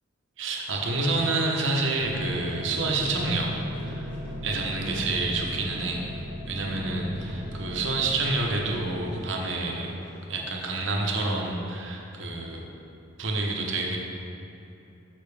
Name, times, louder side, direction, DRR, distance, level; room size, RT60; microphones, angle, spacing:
voice 1, 0.4-3.5 3.8-4.1 4.4-6.0 6.5-9.9 10.3-12.6 13.2-14.0, right 2 dB, 65° right, 0 dB, 0.9 m, -28 dB
sound 1, 2.0-10.7, right 1 dB, 10° left, 1.5 m, -48 dB
sound 2, 2.0-9.2, equal, 35° right, 0.8 m, -37 dB
6.7 x 5.8 x 3.3 m, 2.9 s
head